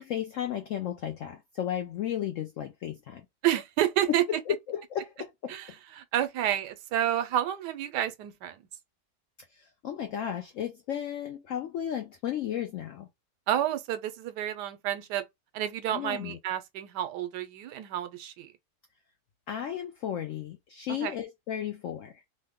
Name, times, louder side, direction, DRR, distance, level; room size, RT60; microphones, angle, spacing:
voice 1, 0.0-3.3 4.5-5.5 9.5-13.1 15.9-16.4 19.5-22.2, left 10 dB, 70° left, 0.7 m, -34 dB
voice 2, 3.4-4.2 5.5-8.6 13.5-15.2 15.5-18.5 20.9-21.1, right 12 dB, 90° right, 1.2 m, -30 dB
3.1 x 2.1 x 3.5 m
omnidirectional pair, 1.8 m